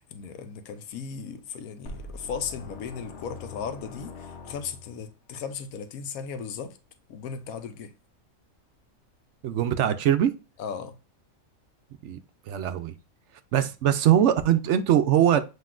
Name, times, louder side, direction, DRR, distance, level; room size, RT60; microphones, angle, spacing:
voice 1, 0.0-6.8 7.1-7.9 10.6-11.0 13.6-13.7, left 6 dB, 80° left, 1.1 m, -36 dB
sound 1, 1.8-5.1, left 3 dB, 55° left, 1.0 m, -43 dB
voice 2, 9.4-10.3 12.0-12.2 12.5-12.9 13.5-15.4, right 10 dB, 65° right, 0.8 m, -22 dB
7.6 x 2.9 x 2.3 m
omnidirectional pair, 1.5 m